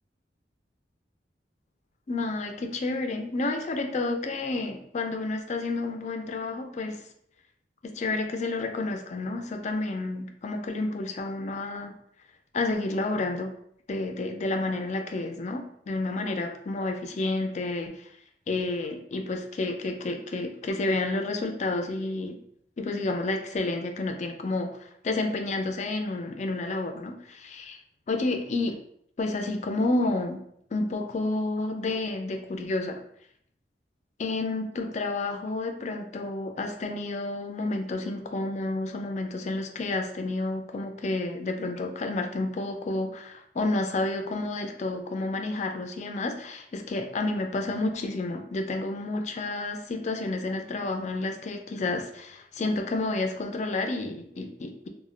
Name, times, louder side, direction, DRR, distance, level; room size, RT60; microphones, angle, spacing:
voice 1, 2.1-7.0 7.8-11.9 12.5-13.5 13.9-17.9 18.5-22.4 22.8-24.8 25.0-27.8 28.1-28.8 29.2-30.4 30.7-33.0 34.2-54.9, left 2 dB, 40° left, 4 dB, 0.4 m, -30 dB
2.2 x 2.1 x 3.7 m, 0.68 s
head